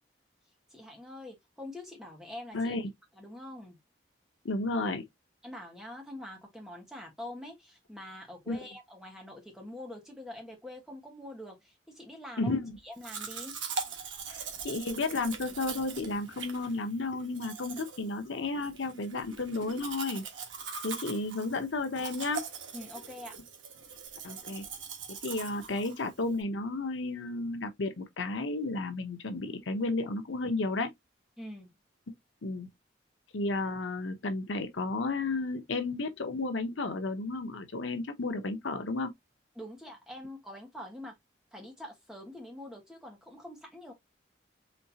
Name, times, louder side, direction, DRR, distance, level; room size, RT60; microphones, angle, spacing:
voice 1, 0.7-2.8 3.1-3.8 5.4-12.6 12.8-13.6 22.7-23.4 31.4-31.7 39.5-41.1 41.5-43.9, left 1 dB, 5° right, 1.4 m, -45 dB
voice 2, 2.5-2.9 4.4-5.0 8.5-8.6 12.4-12.7 14.3-20.2 20.8-22.4 24.2-24.6 25.2-30.9 32.4-32.7 33.3-39.1, left 3 dB, 90° left, 0.8 m, -32 dB
Domestic sounds home sounds, 13.0-26.4, right 5 dB, 85° right, 1.2 m, -42 dB
4.3 x 3.2 x 2.8 m
head